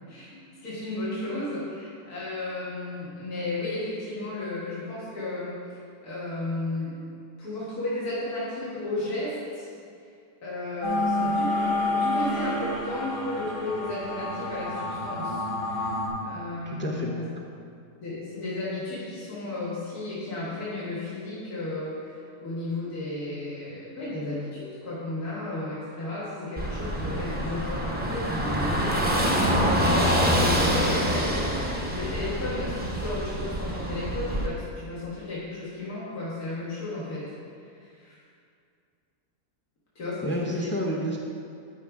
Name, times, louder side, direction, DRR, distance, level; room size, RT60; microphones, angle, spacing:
voice 1, 0.1-7.0 7.4-9.7 10.4-15.9 16.2-17.1 18.0-29.5 29.8-37.3 37.7-38.1 40.0-40.7, left 2 dB, 75° left, -9 dB, 2.4 m, -34 dB
sound 1, 10.8-16.1, left 2 dB, 90° left, 2.4 m, -28 dB
voice 2, 16.7-17.2 40.2-41.2, equal, 15° left, -1 dB, 0.3 m, -30 dB
Car passing by / Engine, 26.6-34.5, equal, 10° right, 0.8 m, -26 dB
13.0 x 5.4 x 3.6 m, 2.3 s
omnidirectional pair, 1.7 m